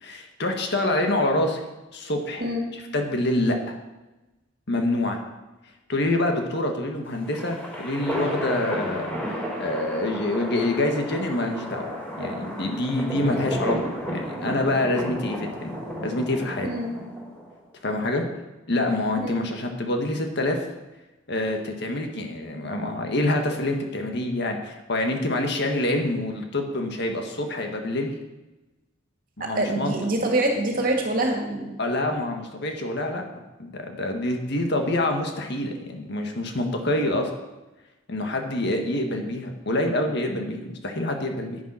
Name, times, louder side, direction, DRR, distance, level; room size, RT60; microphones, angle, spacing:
voice 1, 0.0-1.6 1.9-2.4 2.7-3.8 4.7-5.2 5.9-11.9 12.2-15.7 16.0-16.7 17.8-18.3 18.7-20.6 21.3-28.1 29.4-29.9 31.8-33.2 33.6-37.3 38.1-41.6, left 1 dB, 60° left, 3 dB, 1.7 m, -26 dB
sound 1, 7.0-17.5, equal, 10° left, 4.4 m, -32 dB
voice 2, 29.4-31.7, right 1 dB, 45° right, 1 dB, 2.3 m, -25 dB
10.5 x 9.5 x 5.8 m, 1.1 s
head